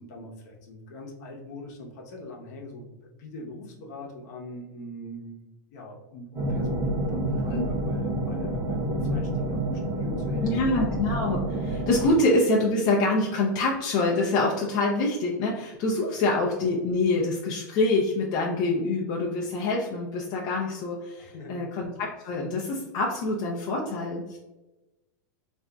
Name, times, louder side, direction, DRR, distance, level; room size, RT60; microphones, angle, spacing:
voice 1, 0.0-5.4 5.7-10.6 12.0-12.1 21.2-21.6, left 1 dB, 65° left, -1 dB, 0.9 m, -42 dB
sound 1, 6.3-12.1, right 1 dB, 30° right, 0.5 m, -28 dB
voice 2, 10.4-24.4, left 2 dB, 45° left, -2 dB, 0.6 m, -26 dB
3.7 x 2.5 x 2.2 m, 1.0 s
supercardioid pair, 125°, 10 cm